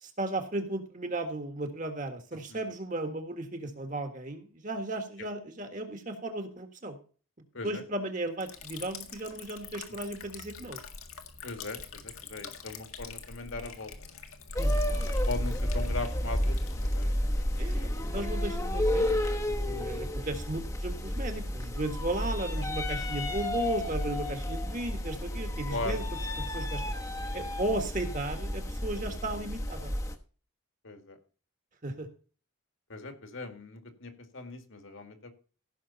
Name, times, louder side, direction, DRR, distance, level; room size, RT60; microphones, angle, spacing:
voice 1, 0.0-7.0 7.6-10.8 14.6-15.1 17.6-19.2 19.5-26.0 26.5-27.0 27.3-29.9 31.8-32.1, right 2 dB, 35° right, 6 dB, 1.7 m, -35 dB
Liquid, 8.4-20.9, left 6 dB, 85° left, 1.8 m, -47 dB
voice 2, 11.4-14.2 15.3-18.4 22.6-22.7 25.7-26.0 30.8-31.2 32.9-35.3, left 2 dB, 65° left, 6 dB, 2.1 m, -40 dB
sound 1, 14.6-30.1, left 1 dB, 15° left, 1.0 m, -31 dB
16.0 x 6.3 x 4.1 m, 0.39 s
head